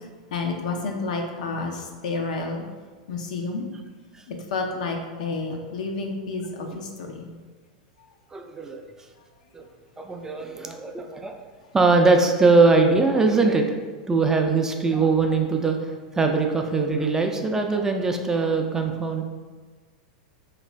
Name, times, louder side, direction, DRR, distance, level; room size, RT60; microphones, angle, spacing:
voice 1, 0.3-2.6 3.1-3.6 4.3-7.4 10.3-10.5, left 3 dB, 70° left, 3 dB, 0.5 m, -30 dB
voice 2, 8.3-8.8 9.5-9.6 10.0-11.4 11.7-13.8 14.1-19.2, right 3 dB, 15° right, 3 dB, 0.3 m, -21 dB
3.0 x 2.5 x 3.2 m, 1.4 s
hypercardioid pair, 100°, 4 cm